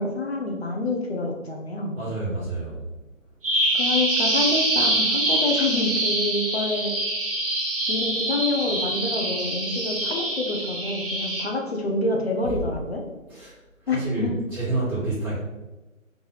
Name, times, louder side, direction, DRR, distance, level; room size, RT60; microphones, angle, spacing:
voice 1, 0.0-2.0 3.8-6.9 7.9-13.0 13.9-14.3, left 2 dB, 50° left, 1 dB, 0.9 m, -27 dB
voice 2, 1.9-2.8 13.3-13.5 13.9-15.4, right 2 dB, 10° right, -17 dB, 0.9 m, -28 dB
Bird vocalization bird call bird song, 3.4-11.4, right 1 dB, 40° right, 1.0 m, -25 dB
3.8 x 3.2 x 4.0 m, 1.1 s
figure-of-eight pair, 155°, 41 cm